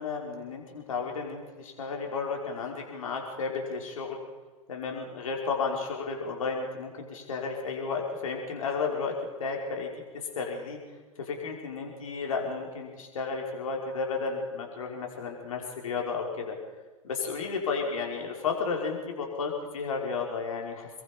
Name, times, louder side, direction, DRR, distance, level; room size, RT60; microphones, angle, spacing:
voice 1, 0.0-4.2 4.7-9.1 9.4-10.8 11.2-16.5 17.0-20.9, left 4 dB, 70° left, 1 dB, 5.3 m, -33 dB
28.0 x 22.5 x 5.3 m, 1.3 s
figure-of-eight pair, 90°, 18 cm